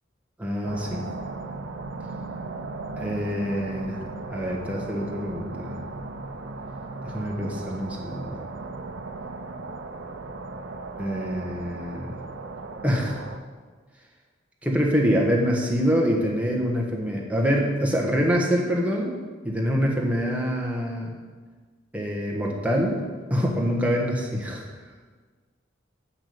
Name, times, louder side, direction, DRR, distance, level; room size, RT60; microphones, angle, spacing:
voice 1, 0.4-1.1 3.0-5.8 7.0-8.4 11.0-12.2 12.8-13.2 14.6-19.1 19.4-21.1 21.9-23.0 23.3-24.6, equal, 5° right, -1 dB, 1.3 m, -25 dB
sound 1, 0.6-13.4, right 3 dB, 70° right, 0.7 m, -37 dB
7.4 x 7.0 x 6.9 m, 1.5 s
head